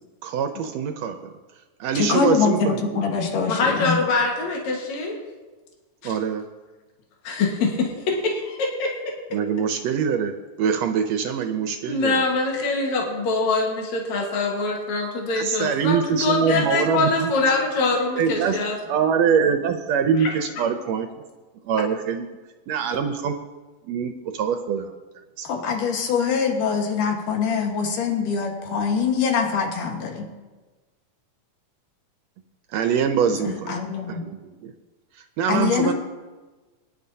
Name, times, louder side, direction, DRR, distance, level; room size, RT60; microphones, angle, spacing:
voice 1, 0.2-1.3 1.8-3.0 6.0-6.4 9.3-10.3 10.6-12.1 15.3-17.3 18.2-18.6 18.9-21.1 21.6-22.4 22.7-23.3 23.8-24.9 25.4-25.5 27.1-27.2 32.7-34.7 35.4-35.9, right 7 dB, 75° right, 6 dB, 1.6 m, -24 dB
voice 2, 1.9-4.0 25.5-30.3 33.3-34.2 35.5-35.9, left 5 dB, 85° left, 2 dB, 3.1 m, -24 dB
voice 3, 3.5-5.2 6.0-6.1 7.2-8.9 11.9-18.8 20.2-20.3, left 3 dB, 65° left, -1 dB, 2.8 m, -24 dB
22.0 x 10.5 x 2.8 m, 1.3 s
omnidirectional pair, 3.6 m